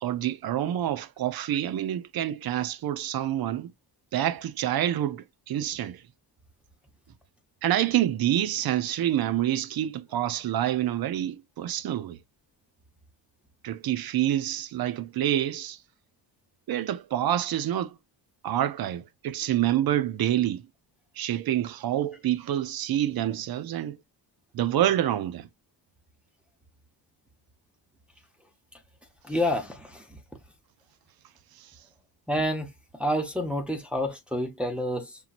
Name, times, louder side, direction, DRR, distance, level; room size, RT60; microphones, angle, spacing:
voice 1, 0.0-3.7 4.1-6.0 7.6-12.2 13.6-15.8 16.7-18.0 18.4-20.6 21.2-24.0 24.5-25.5, right 12 dB, 55° right, 0.6 m, -27 dB
voice 2, 29.2-30.2 32.3-32.7 33.0-35.2, equal, 5° right, 0.7 m, -28 dB
5.7 x 2.9 x 2.4 m
wide cardioid pair, 160°, 45 cm